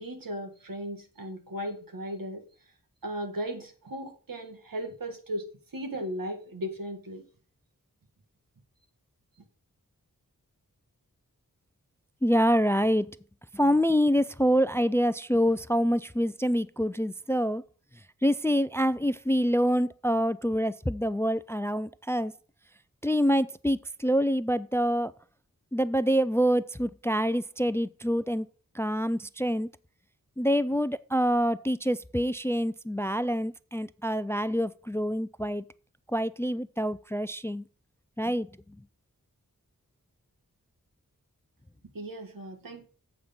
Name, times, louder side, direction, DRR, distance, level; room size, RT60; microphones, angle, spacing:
voice 1, 0.0-2.4 3.0-5.4 5.7-7.2 41.9-42.9, equal, 85° right, 1.7 m, -36 dB
voice 2, 12.2-13.2 13.5-17.6 18.2-22.3 23.0-25.1 25.7-28.5 28.7-29.7 30.4-35.6 36.1-37.6 38.2-38.8, equal, 10° left, 0.3 m, -26 dB
7.9 x 5.2 x 5.8 m
wide cardioid pair, 70°, 33 cm